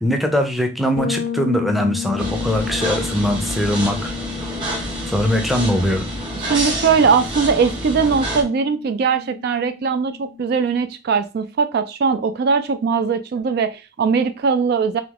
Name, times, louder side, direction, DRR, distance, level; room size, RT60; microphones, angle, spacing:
voice 1, 0.0-4.1 5.1-6.1, equal, ahead, 4 dB, 0.6 m, -21 dB
Bass guitar, 1.0-10.6, left 9 dB, 50° left, 0.4 m, -33 dB
sound 1, 2.2-8.4, right 1 dB, 25° right, 1.5 m, -28 dB
voice 2, 6.4-15.0, right 5 dB, 55° right, 10 dB, 0.3 m, -20 dB
3.5 x 2.8 x 3.6 m, 0.29 s
head